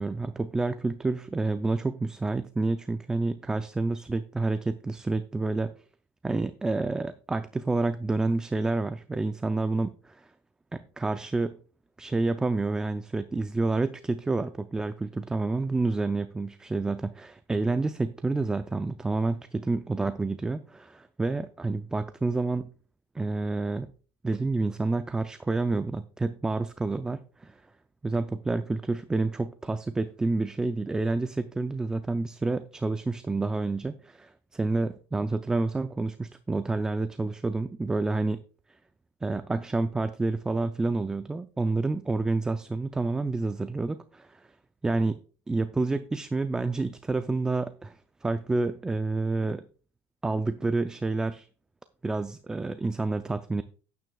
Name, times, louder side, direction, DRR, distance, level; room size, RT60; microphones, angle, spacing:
voice 1, 0.0-5.7 6.2-10.3 10.7-11.6 12.0-22.7 23.1-23.9 24.2-27.6 28.0-38.4 39.2-44.5 44.8-45.2 45.5-49.6 50.2-51.5 52.0-53.6, right 3 dB, 10° right, 0.4 m, -29 dB
12.0 x 9.5 x 2.3 m
cardioid pair, 135°, 7 cm